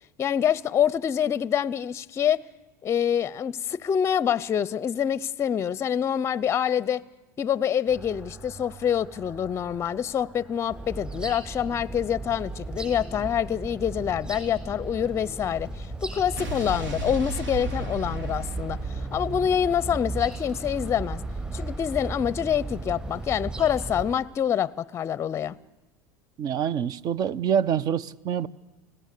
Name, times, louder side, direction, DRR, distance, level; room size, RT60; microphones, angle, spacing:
voice 1, 0.2-2.4 2.8-7.0 7.4-18.8 19.1-21.2 21.5-25.5, left 9 dB, 30° left, 0.6 m, -26 dB
sound 1, 7.9-17.4, right 3 dB, 25° right, 6.4 m, -51 dB
sound 2, 10.7-24.2, right 2 dB, 10° right, 7.3 m, -35 dB
Explosion, 16.4-20.7, right 2 dB, 80° right, 3.3 m, -36 dB
voice 2, 26.4-28.5, right 8 dB, 45° right, 0.7 m, -26 dB
29.0 x 17.0 x 6.7 m
supercardioid pair, 110°, 10 cm